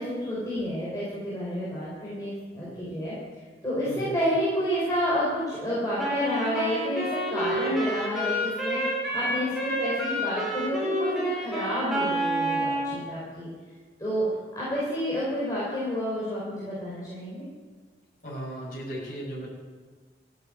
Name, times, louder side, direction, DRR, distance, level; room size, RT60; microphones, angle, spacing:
voice 1, 0.0-3.1 3.6-13.5 14.0-14.3 14.5-17.4, equal, 20° left, -9 dB, 5.0 m, -29 dB
voice 2, 3.9-4.2 18.2-19.5, right 1 dB, 50° left, -5 dB, 6.3 m, -36 dB
Wind instrument woodwind instrument, 6.0-12.9, right 1 dB, ahead, 4.0 m, -29 dB
15.0 x 9.2 x 9.3 m, 1.5 s
head